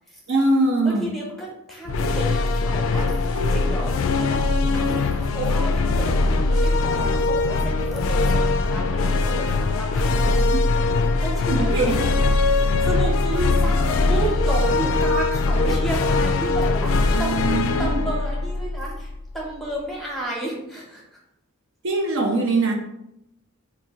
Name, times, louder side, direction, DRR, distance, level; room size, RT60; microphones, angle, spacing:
voice 1, 0.3-1.1 10.5-10.6 11.5-12.0 13.3-13.5 17.1-18.0 21.8-22.7, right 2 dB, 60° right, 1 dB, 0.5 m, -22 dB
voice 2, 0.8-4.4 4.7-10.5 11.2-17.4 17.8-21.0, right 1 dB, ahead, -3 dB, 0.9 m, -32 dB
sound 1, 1.8-19.3, left 3 dB, 70° left, 0.3 m, -21 dB
2.8 x 2.6 x 4.1 m, 0.84 s
head